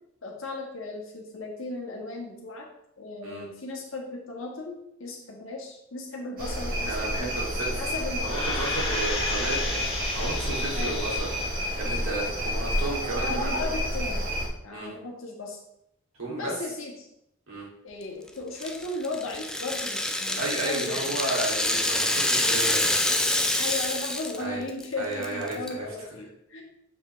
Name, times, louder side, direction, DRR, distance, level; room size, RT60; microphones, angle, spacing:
voice 1, 0.2-2.7 3.0-7.3 7.8-8.3 10.8-11.1 13.2-14.3 14.6-15.6 16.4-17.1 17.8-21.2 23.6-26.6, left 3 dB, 70° left, 0 dB, 1.6 m, -36 dB
sound 1, 6.4-14.5, equal, 45° right, 2.1 m, -29 dB
voice 2, 6.9-7.8 8.2-11.3 11.7-13.7 14.7-14.9 16.2-16.5 17.5-17.6 20.4-23.0 24.4-24.6 25.0-25.9, right 2 dB, 75° right, -4 dB, 2.7 m, -33 dB
sound 2, 8.2-11.6 12.1-12.2, left 2 dB, 30° left, 1.6 m, -33 dB
Rattle (instrument), 18.6-24.4 24.7-24.8 25.2-25.7, left 1 dB, 5° left, 0.4 m, -26 dB
7.1 x 4.9 x 3.3 m, 0.78 s
head